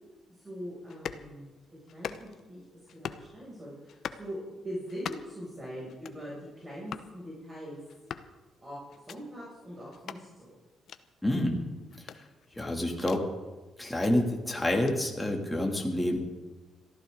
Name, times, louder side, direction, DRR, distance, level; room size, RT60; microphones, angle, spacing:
voice 1, 0.3-1.5 1.9-2.6 2.9-4.4 4.6-7.8 8.6-10.5, equal, 25° right, -6 dB, 7.2 m, -42 dB
sound 1, 0.9-1.3 1.9-2.5 2.9-3.3 3.9-4.3 4.9-5.4 5.9-6.2 6.9-7.1 7.9-8.3 8.9-9.2 9.9-10.2 10.9-11.0 11.9-13.2 13.8-14.1 14.9-15.0, left 8 dB, 65° left, 0.9 m, -41 dB
voice 2, 11.2-11.6 12.0-12.2 12.5-13.2 13.8-16.2, left 1 dB, 10° left, 0 dB, 3.0 m, -28 dB
23.0 x 15.0 x 4.0 m, 1.2 s
cardioid pair, 90°, 0 cm